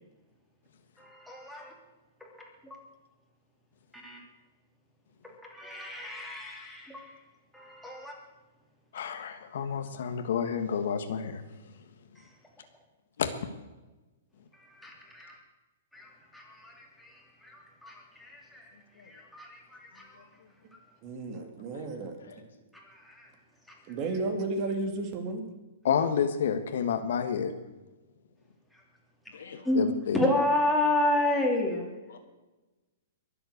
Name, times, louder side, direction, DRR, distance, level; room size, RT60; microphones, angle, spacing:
voice 1, 1.0-1.7 2.3-2.8 3.9-4.2 5.2-7.2 7.5-8.1 9.8-10.0 12.2-12.3 14.5-15.4 15.9-18.7 19.0-20.2 22.7-23.3 23.7-23.8 24.1-24.2 28.7-28.8 29.6-29.9 30.1-31.9, left 1 dB, ahead, -3 dB, 3.0 m, -31 dB
voice 2, 8.9-11.4 13.2-13.3 25.8-27.5 29.7-30.2, left 7 dB, 65° left, 8 dB, 1.5 m, -29 dB
voice 3, 20.1-20.5 21.3-21.5 21.7-22.5 29.3-29.7 32.1-32.2, left 6 dB, 90° left, 4 dB, 2.7 m, -51 dB
voice 4, 21.0-22.2 23.9-25.4, right 3 dB, 30° right, 6 dB, 2.2 m, -33 dB
22.5 x 7.9 x 6.6 m, 1.1 s
hypercardioid pair, 165°, 0 cm